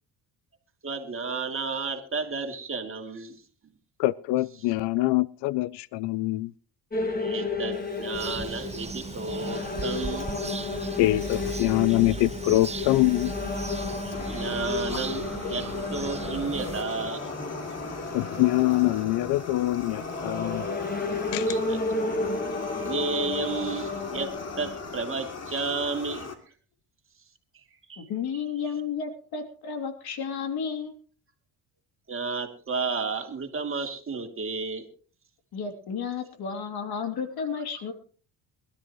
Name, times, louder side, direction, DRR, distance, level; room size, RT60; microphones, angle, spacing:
voice 1, 0.8-3.4 7.2-10.3 14.0-17.3 21.4-21.8 22.8-24.3 24.6-26.3 27.9-28.1 32.1-34.9, right 4 dB, 30° right, 2.9 m, -32 dB
voice 2, 4.0-6.5 11.0-13.3 14.9-15.0 18.1-20.7 21.3-21.6, left 18 dB, 85° left, 0.6 m, -24 dB
sound 1, 6.9-25.0, left 3 dB, 20° left, 2.3 m, -33 dB
Fire, 7.7-26.3, left 4 dB, 40° left, 2.7 m, -40 dB
sound 2, 8.1-16.8, right 4 dB, 15° right, 0.7 m, -37 dB
voice 3, 28.0-31.0 35.5-37.9, left 6 dB, 65° left, 2.9 m, -32 dB
23.0 x 13.0 x 3.1 m
cardioid pair, 105°, 40 cm